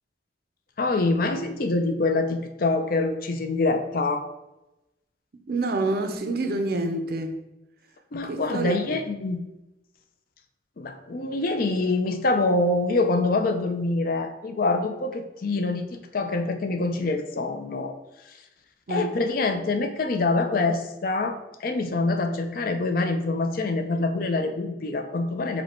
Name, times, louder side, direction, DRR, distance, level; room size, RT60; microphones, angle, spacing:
voice 1, 0.8-4.3 8.1-9.4 10.8-18.0 18.3-18.4 18.9-25.6, left 3 dB, 50° left, 0.4 m, -25 dB
voice 2, 5.5-7.3 8.2-8.8 18.9-19.2, right 2 dB, 55° right, 0.5 m, -27 dB
5.1 x 2.2 x 4.2 m
head